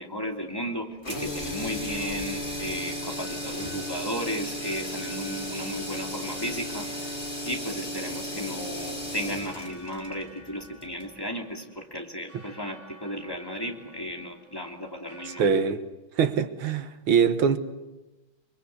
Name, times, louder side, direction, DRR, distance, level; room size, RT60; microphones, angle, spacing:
voice 1, 0.0-7.2 7.4-15.5, equal, 10° left, 2.7 m, -34 dB
sound 1, 1.0-11.1, equal, 30° left, 4.2 m, -35 dB
sound 2, 2.5-15.5, right 1 dB, 35° right, 6.6 m, -53 dB
voice 2, 15.4-15.8 16.2-17.6, right 6 dB, 85° right, 2.2 m, -23 dB
30.0 x 22.5 x 8.3 m
omnidirectional pair, 2.2 m